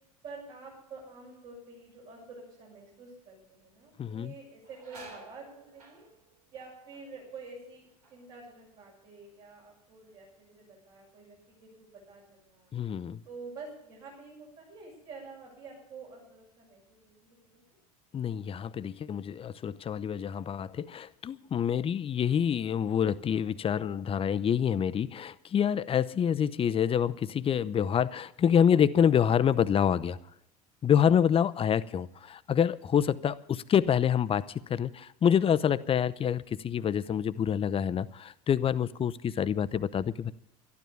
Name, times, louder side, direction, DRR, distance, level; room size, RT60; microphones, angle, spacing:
voice 1, 0.2-6.1 6.5-12.7 13.2-17.6, right 4 dB, 55° right, -5 dB, 7.1 m, -48 dB
Copper cylinder sound, 3.4-3.8 4.1-9.7 10.0-10.6 11.1-14.0 14.4-14.5 15.5-15.7 16.1-17.2 17.7-17.8 18.4-19.1 19.4-20.6, right 3 dB, 85° right, 3.2 m, -56 dB
voice 2, 4.0-4.3 12.7-13.2 18.1-30.2 30.8-40.3, left 8 dB, 30° left, 15 dB, 0.7 m, -27 dB
12.0 x 12.0 x 7.0 m, 0.81 s
hypercardioid pair, 85°, 19 cm